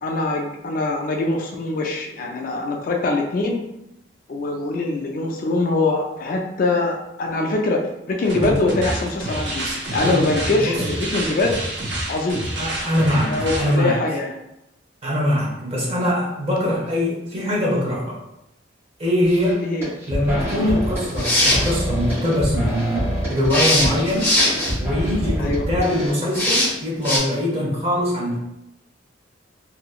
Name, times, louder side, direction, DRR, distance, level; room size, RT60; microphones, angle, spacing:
voice 1, 0.0-3.6 4.3-11.6 12.1-12.4 13.3-14.3 19.6-19.9 25.4-25.7, left 2 dB, 45° left, 2 dB, 0.3 m, -23 dB
sound 1, 8.2-13.8, right 1 dB, 65° right, 0.7 m, -28 dB
voice 2, 10.5-10.8 12.5-14.2 15.0-18.2 19.0-19.6 20.1-24.3 24.8-28.4, left 1 dB, 30° right, -5 dB, 0.9 m, -22 dB
sound 2, 19.2-19.5 19.8-26.1, equal, 15° right, 1.2 m, -26 dB
sound 3, 21.0-21.7 23.5-24.7 26.3-26.7 27.0-27.2, left 1 dB, 10° left, 0.7 m, -19 dB
2.9 x 2.6 x 2.3 m, 0.86 s
head